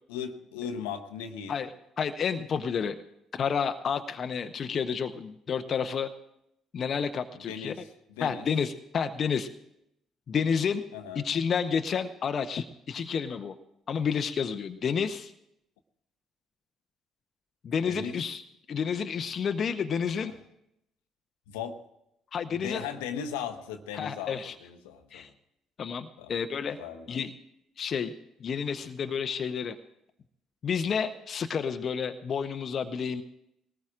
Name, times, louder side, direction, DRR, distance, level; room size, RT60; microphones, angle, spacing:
voice 1, 0.1-1.5 7.5-8.5 10.9-11.2 17.8-18.2 20.2-20.3 21.5-21.8 22.5-25.3 26.2-26.4 26.8-27.1, left 7 dB, 75° left, 7 dB, 0.9 m, -37 dB
voice 2, 2.0-3.0 3.4-6.1 6.7-7.7 8.2-9.5 10.3-10.8 11.2-13.5 13.9-15.3 17.6-18.4 18.7-20.3 22.3-22.8 24.0-24.5 25.1-25.3 25.8-26.8 27.1-27.3 27.8-28.1 28.4-29.8 30.6-33.2, left 6 dB, 50° left, 8 dB, 0.7 m, -30 dB
21.5 x 18.5 x 2.5 m, 0.82 s
hypercardioid pair, 50°, 0 cm